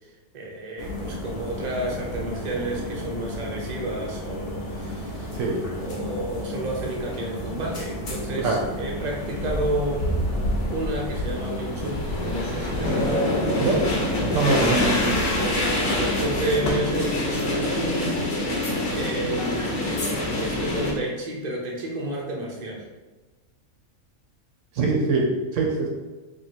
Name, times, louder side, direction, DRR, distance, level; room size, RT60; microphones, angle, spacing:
voice 1, 0.0-5.4 5.8-10.1 10.7-13.3 14.6-15.3 15.8-18.5 18.9-19.8 20.4-22.9, right 1 dB, 40° right, -2 dB, 0.6 m, -31 dB
sound 1, 0.8-16.7, left 1 dB, 50° left, 0.8 m, -33 dB
sound 2, 9.0-20.9, left 1 dB, 65° left, 1.2 m, -26 dB
voice 2, 14.2-14.8 24.7-25.9, right 3 dB, 65° right, 0 dB, 0.9 m, -23 dB
2.9 x 2.8 x 4.1 m, 1.2 s
omnidirectional pair, 1.5 m